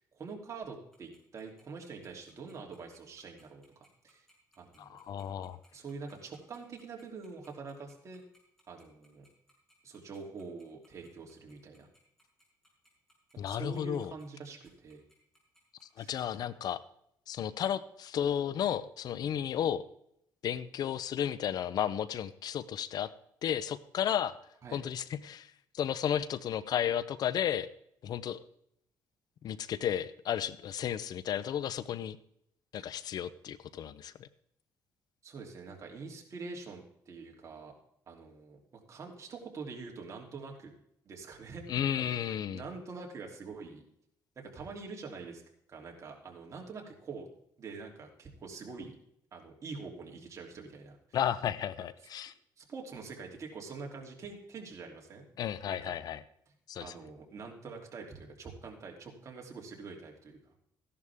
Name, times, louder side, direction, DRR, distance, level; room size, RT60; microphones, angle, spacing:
voice 1, 0.0-3.6 4.0-4.3 4.6-5.0 5.7-8.2 8.7-9.3 9.8-11.9 13.4-15.0 16.0-16.1 24.6-24.8 32.7-33.0 35.2-37.7 38.1-40.7 41.0-41.6 42.0-43.8 44.3-45.4 45.7-47.3 47.6-49.0 49.3-51.0 52.6-55.2 55.7-55.9 56.8-60.5, right 4 dB, 40° right, 1 dB, 3.1 m, -45 dB
Tick-tock, 0.9-16.0, right 1 dB, 5° left, 6.3 m, -66 dB
voice 2, 4.8-5.6 13.4-14.1 16.0-16.8 17.3-19.8 20.4-23.1 23.4-24.3 24.7-27.7 28.0-28.4 29.4-32.2 32.7-34.3 41.7-42.6 51.1-52.3 55.4-56.2 56.7-56.9, left 9 dB, 60° left, 16 dB, 0.6 m, -33 dB
15.0 x 11.0 x 3.6 m, 0.73 s
cardioid pair, 90°, 8 cm